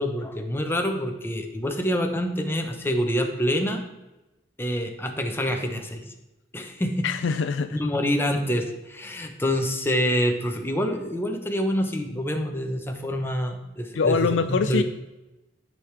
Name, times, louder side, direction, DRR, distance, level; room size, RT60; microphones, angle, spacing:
voice 1, 0.0-3.8 4.6-6.0 6.5-7.1 7.7-14.8, equal, 10° left, 4 dB, 0.9 m, -26 dB
voice 2, 7.0-7.8 13.9-14.8, left 5 dB, 75° left, 8 dB, 0.4 m, -23 dB
12.0 x 4.9 x 3.4 m, 0.99 s
head